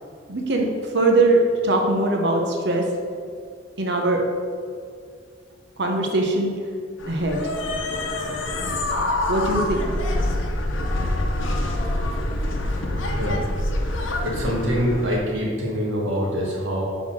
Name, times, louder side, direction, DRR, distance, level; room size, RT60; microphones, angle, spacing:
voice 1, 0.3-2.9 3.8-4.3 5.8-6.5 7.1-7.5 9.3-9.9 10.2-10.3, right 2 dB, 60° right, 1 dB, 0.9 m, -21 dB
sound 1, 7.0-15.2, left 1 dB, 80° left, 0.8 m, -26 dB
voice 2, 13.8-16.8, equal, 80° right, -4 dB, 1.5 m, -25 dB
5.8 x 4.0 x 6.2 m, 2.2 s
head